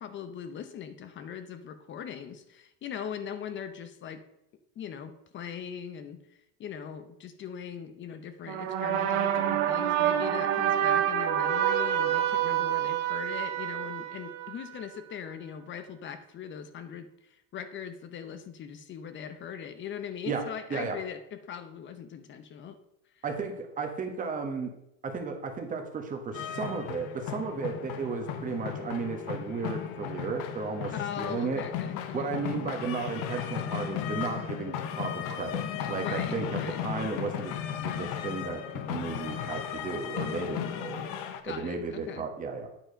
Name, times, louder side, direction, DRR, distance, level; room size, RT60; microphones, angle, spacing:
voice 1, 0.0-4.2 4.8-22.8 23.2-23.3 31.0-32.3 36.0-36.8 41.4-42.2, left 8 dB, 30° left, 10 dB, 0.7 m, -40 dB
sound 1, 8.5-14.8, right 10 dB, 75° right, 1.1 m, -27 dB
voice 2, 20.7-21.0 23.2-24.7 25.0-31.6 32.1-37.5 37.8-41.1 41.5-42.7, right 4 dB, 20° right, 4 dB, 1.3 m, -34 dB
sound 2, 26.3-41.4, left 9 dB, 60° left, 0.9 m, -35 dB
9.0 x 4.7 x 5.1 m, 0.83 s
supercardioid pair, 130°, 36 cm